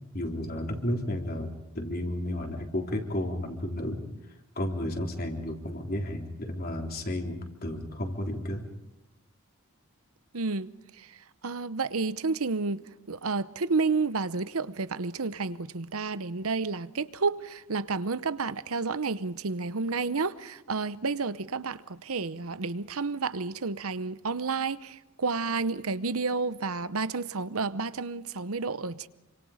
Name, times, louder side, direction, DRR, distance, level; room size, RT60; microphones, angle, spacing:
voice 1, 0.1-4.0 4.5-8.6, left 1 dB, 40° left, 3.6 m, -32 dB
voice 2, 10.3-10.7 11.0-11.2 11.4-12.8 13.1-29.1, right 4 dB, 75° right, 0.9 m, -30 dB
28.0 x 25.5 x 5.1 m
head